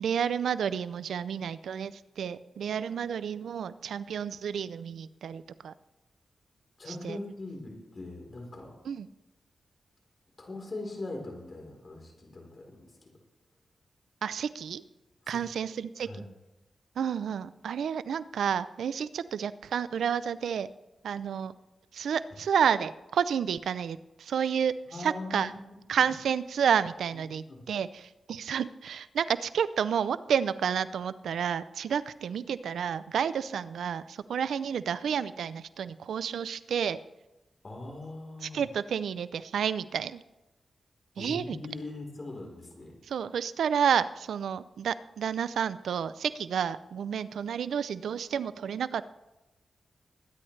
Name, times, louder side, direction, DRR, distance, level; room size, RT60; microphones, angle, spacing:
voice 1, 0.0-5.7 6.9-7.2 8.9-9.1 14.2-14.8 15.3-16.3 17.0-20.7 21.0-21.5 21.9-25.5 25.9-37.0 38.4-40.2 41.2-41.6 43.1-49.0, right 8 dB, 90° right, 16 dB, 0.4 m, -30 dB
voice 2, 6.8-8.7 10.4-12.9 15.2-15.4 16.0-16.3 24.9-25.6 26.0-26.1 27.1-27.2 27.5-27.6 37.6-38.6 41.2-42.9, left 2 dB, 40° left, 1 dB, 3.7 m, -41 dB
21.5 x 10.0 x 3.2 m, 1.0 s
cardioid pair, 75°, 0 cm